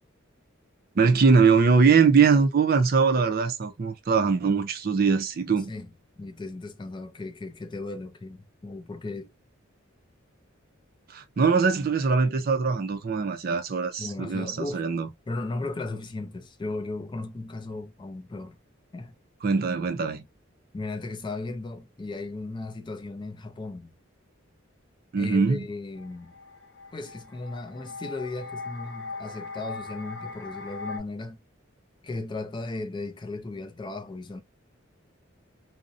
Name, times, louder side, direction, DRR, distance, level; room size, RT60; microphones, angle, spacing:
voice 1, 1.0-5.7 11.1-15.1 19.4-20.2 25.1-25.7, right 5 dB, 45° right, 0.4 m, -22 dB
voice 2, 6.2-9.3 14.0-14.8 15.3-18.6 18.9-19.1 20.7-23.9 25.2-26.3 26.9-31.4 32.0-34.4, left 2 dB, 25° left, 0.3 m, -36 dB
sound 1, 26.0-31.0, left 4 dB, 65° left, 0.8 m, -39 dB
2.5 x 2.0 x 2.4 m
head